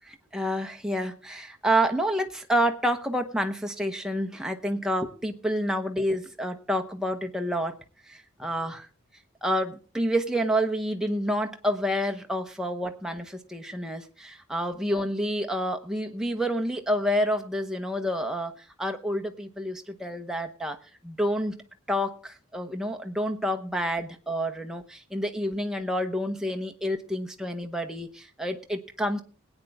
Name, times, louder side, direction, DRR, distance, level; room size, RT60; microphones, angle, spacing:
voice 1, 0.1-7.8 8.1-8.9 9.4-20.8 21.0-21.6 21.9-29.2, equal, 5° right, 4 dB, 0.9 m, -28 dB
20.5 x 9.0 x 3.5 m, 0.40 s
head